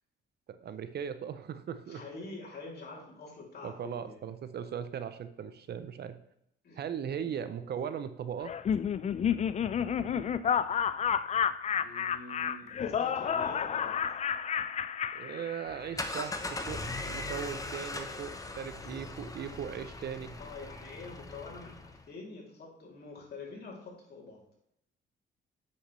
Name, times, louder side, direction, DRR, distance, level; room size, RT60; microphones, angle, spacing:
voice 1, 0.5-2.0 3.6-6.2 6.8-8.5 15.1-20.3, right 8 dB, 55° right, 11 dB, 0.6 m, -38 dB
voice 2, 1.9-4.2 6.6-6.8 11.7-13.9 20.4-24.4, left 3 dB, 55° left, -3 dB, 2.9 m, -46 dB
Laughter, 8.4-15.9, left 8 dB, 35° left, 0.4 m, -31 dB
sound 1, 15.7-22.1, left 2 dB, 15° left, 0.8 m, -39 dB
8.1 x 6.4 x 3.2 m, 0.76 s
cardioid pair, 90°, 20 cm